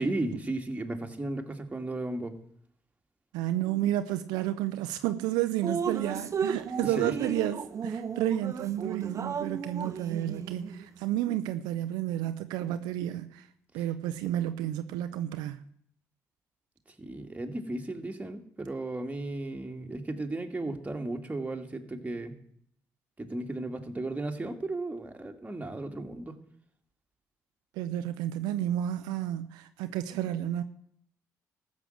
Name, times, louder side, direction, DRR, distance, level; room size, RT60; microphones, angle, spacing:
voice 1, 0.0-2.3 6.8-7.2 13.8-13.9 14.2-14.3 17.0-22.4 23.2-26.3, right 2 dB, 20° right, 2.1 m, -35 dB
voice 2, 3.3-13.5 13.7-15.6 27.8-30.6, right 13 dB, 85° right, 0.6 m, -31 dB
Drip, 5.6-10.8, right 6 dB, 45° right, 0.9 m, -34 dB
14.0 x 6.3 x 7.9 m
supercardioid pair, 60°, 7 cm